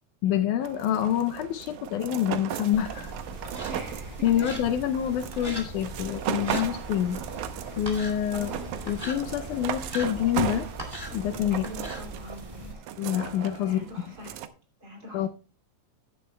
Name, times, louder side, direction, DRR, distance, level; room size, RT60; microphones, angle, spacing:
voice 1, 0.2-3.1 4.2-7.2 7.8-8.5 8.9-10.7 11.1-11.7 13.0-13.9 15.1-15.3, left 10 dB, 80° left, 2.0 m, -27 dB
sound 1, 0.6-14.5, right 10 dB, 75° right, 2.1 m, -36 dB
sound 2, 2.7-12.7, right 1 dB, 10° right, 1.7 m, -40 dB
Engine, 2.9-11.4, equal, 50° left, 4.8 m, -48 dB
voice 2, 3.7-4.5 5.4-5.5 8.3-8.7 11.5-12.9 13.6-14.4 14.8-15.3, equal, 30° right, 3.0 m, -43 dB
14.0 x 11.0 x 2.2 m
omnidirectional pair, 3.7 m